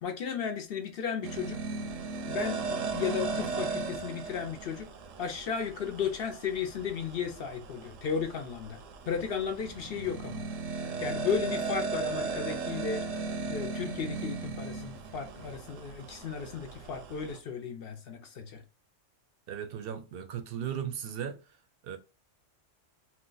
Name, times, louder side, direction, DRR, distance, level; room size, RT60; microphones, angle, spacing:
voice 1, 0.0-1.6 2.3-4.9 5.2-8.8 9.1-10.5 11.0-13.0 13.5-18.6, left 6 dB, 60° left, 0.7 m, -34 dB
sound 1, 1.2-17.4, right 4 dB, 85° right, 1.0 m, -37 dB
voice 2, 19.5-21.4 21.9-22.0, right 8 dB, 60° right, 0.6 m, -36 dB
2.8 x 2.2 x 3.8 m
omnidirectional pair, 1.3 m